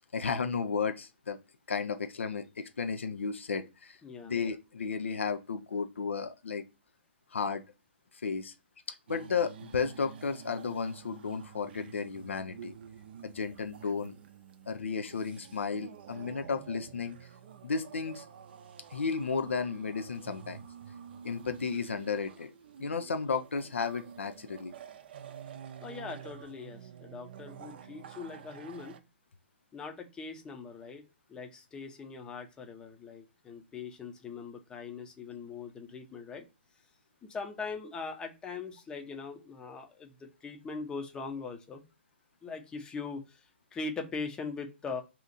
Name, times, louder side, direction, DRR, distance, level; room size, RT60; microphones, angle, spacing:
voice 1, 0.1-1.4 1.7-6.6 7.3-7.6 8.1-8.5 8.9-12.8 13.2-14.2 14.7-17.3 17.6-18.3 18.9-20.6 21.2-22.5 22.8-24.7, left 5 dB, 80° left, 0.5 m, -33 dB
voice 2, 4.0-4.3 25.8-29.0 29.7-31.0 31.3-36.5 37.2-41.8 42.4-45.0, left 4 dB, 15° left, 0.6 m, -41 dB
sound 1, 9.1-29.0, right 8 dB, 55° right, 0.5 m, -49 dB
2.8 x 2.4 x 4.0 m
hypercardioid pair, 135°, 6 cm